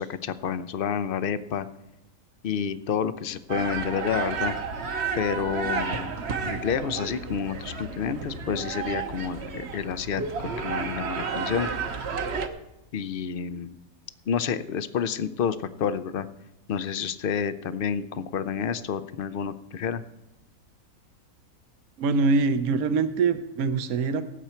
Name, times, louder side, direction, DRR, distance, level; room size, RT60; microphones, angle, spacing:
voice 1, 0.0-1.7 2.4-4.5 5.1-6.1 6.4-11.7 12.9-13.7 14.3-16.3 16.7-20.0, left 7 dB, 70° left, 13 dB, 0.5 m, -29 dB
sound 1, 3.5-12.5, right 5 dB, 50° right, 1.0 m, -32 dB
voice 2, 22.0-24.2, right 4 dB, 70° right, 10 dB, 1.2 m, -24 dB
18.0 x 8.0 x 4.4 m, 0.92 s
omnidirectional pair, 1.6 m